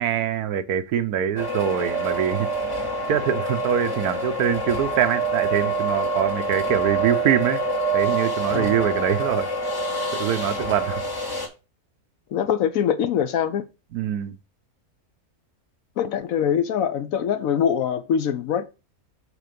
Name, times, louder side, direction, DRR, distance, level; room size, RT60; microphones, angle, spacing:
voice 1, 0.0-2.5 3.1-7.6 7.9-9.5 10.1-11.0 13.9-14.4, right 9 dB, 90° right, 1.3 m, -24 dB
sound 1, 1.4-11.5, right 2 dB, 55° left, 1.9 m, -26 dB
voice 2, 12.3-13.7 16.0-18.6, left 8 dB, 70° left, 1.1 m, -23 dB
6.7 x 4.6 x 5.1 m
omnidirectional pair, 1.6 m